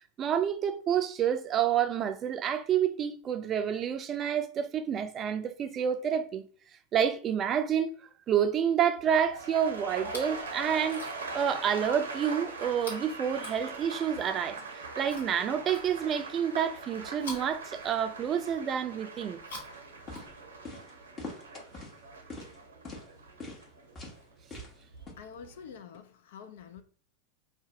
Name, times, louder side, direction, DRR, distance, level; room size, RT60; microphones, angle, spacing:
voice 1, 0.2-6.4 6.9-11.0 11.3-19.4, right 8 dB, 35° right, 0.4 m, -29 dB
sound 1, 9.0-25.0 25.3-25.8, right 3 dB, 80° right, 0.6 m, -42 dB
Chewing mastication, 9.9-10.4 10.8-11.4 12.7-14.1 15.0-16.3 17.1-18.4 19.3-20.7 21.6-21.7, left 2 dB, 80° left, 1.4 m, -47 dB
sound 2, 19.7-19.8 20.1-20.3 20.6-20.9 21.2-21.9 22.3-22.6 22.8-23.0 23.4-23.6 23.9-24.2 24.5-24.8 25.1-25.2, left 3 dB, 30° left, 1.0 m, -42 dB
voice 2, 25.1-26.8, left 7 dB, 65° left, 0.4 m, -47 dB
2.5 x 2.2 x 3.8 m
figure-of-eight pair, 85°, 0 cm